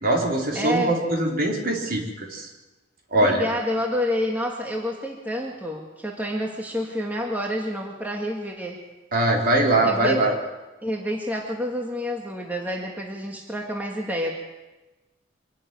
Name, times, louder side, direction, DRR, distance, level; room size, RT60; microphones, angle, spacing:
voice 1, 0.0-2.5 3.1-3.5 9.1-10.3, right 1 dB, 50° right, 0 dB, 4.1 m, -22 dB
voice 2, 0.5-1.0 3.2-8.8 9.8-10.2 10.8-14.3, equal, 10° right, 0 dB, 1.9 m, -28 dB
25.0 x 12.0 x 9.4 m, 1.1 s
head